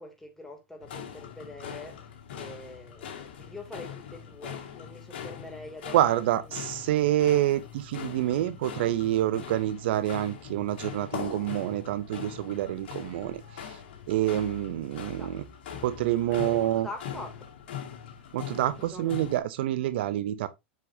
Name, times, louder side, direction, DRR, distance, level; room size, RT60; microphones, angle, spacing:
voice 1, 0.0-6.6 15.2-15.3 16.3-17.4 18.8-19.1, left 2 dB, 5° left, 3.0 m, -44 dB
sound 1, 0.8-19.4, left 8 dB, 70° left, 2.2 m, -41 dB
voice 2, 5.9-13.8 14.1-15.4 15.8-16.9 18.3-20.5, right 13 dB, 70° right, 0.7 m, -27 dB
7.3 x 5.8 x 2.8 m
hypercardioid pair, 100°, 6 cm